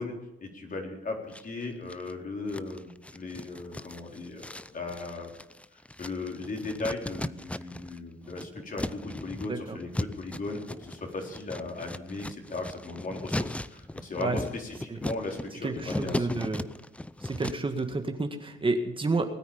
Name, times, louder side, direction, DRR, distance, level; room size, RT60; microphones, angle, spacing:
voice 1, 0.0-5.3 6.0-16.4, left 3 dB, 45° left, 1 dB, 4.2 m, -37 dB
sound 1, 1.3-2.1 2.5-8.0 8.2-17.8, left 1 dB, 5° left, 0.6 m, -37 dB
voice 2, 15.6-16.7 17.2-19.3, right 3 dB, 25° right, 5 dB, 1.8 m, -30 dB
20.5 x 9.4 x 7.2 m, 0.96 s
cardioid pair, 90°, 20 cm